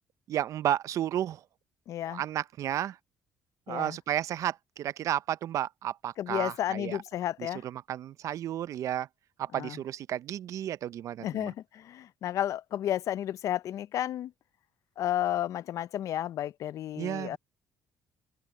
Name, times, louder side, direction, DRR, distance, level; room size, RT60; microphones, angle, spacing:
voice 1, 0.3-1.4 2.1-3.0 3.7-7.0 7.4-9.1 9.4-11.5 17.0-17.4, right 11 dB, 65° right, 0.5 m, -32 dB
voice 2, 1.9-2.2 3.7-4.0 6.2-7.6 9.5-9.8 11.2-14.3 15.0-17.4, left 12 dB, 65° left, 0.5 m, -32 dB
open air
cardioid pair, 100°, 6 cm